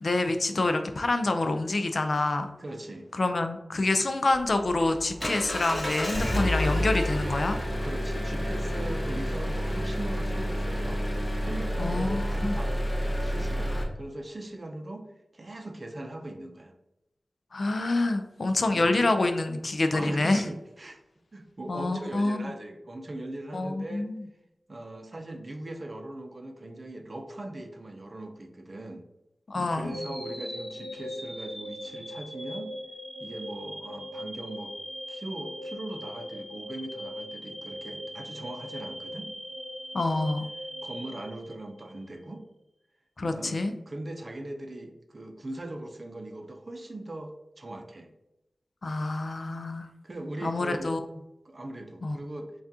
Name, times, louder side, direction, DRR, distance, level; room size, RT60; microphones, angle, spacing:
voice 1, 0.0-2.5 3.1-7.6 11.8-12.5 13.7-13.8 17.5-20.4 21.7-22.5 23.5-24.2 29.5-29.9 39.9-40.5 43.2-43.7 48.8-49.9 50.4-51.0 52.0-52.2, left 2 dB, 55° left, 7 dB, 0.4 m, -27 dB
voice 2, 2.6-3.1 7.8-11.0 11.4-16.8 18.7-19.0 19.9-21.0 21.3-24.1 24.7-29.1 29.7-32.7 33.2-34.8 35.1-39.3 40.8-42.4 43.2-43.6 43.9-48.1 50.0-51.0 51.4-52.5, right 1 dB, 40° right, 5 dB, 0.5 m, -40 dB
Engine, 4.3-13.8, equal, 20° left, 0.8 m, -29 dB
sound 1, 29.9-42.0, equal, ahead, 1.1 m, -40 dB
5.7 x 2.4 x 2.7 m, 0.88 s
wide cardioid pair, 95°, 0 cm